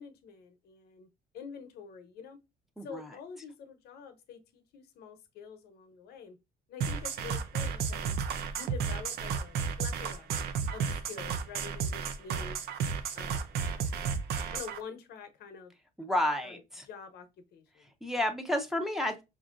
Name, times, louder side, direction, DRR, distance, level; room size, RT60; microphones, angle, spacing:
voice 1, 0.0-2.4 2.8-6.4 6.7-8.1 8.6-10.3 10.7-12.6 13.1-13.6 14.5-15.7 16.4-16.6 16.9-17.9, left 6 dB, 70° left, 0.7 m, -47 dB
voice 2, 2.8-3.1 16.0-16.9 18.0-19.2, left 1 dB, ahead, 0.7 m, -31 dB
sound 1, 6.8-14.8, right 6 dB, 75° right, 0.5 m, -32 dB
5.2 x 2.5 x 2.4 m
cardioid pair, 110°, 17 cm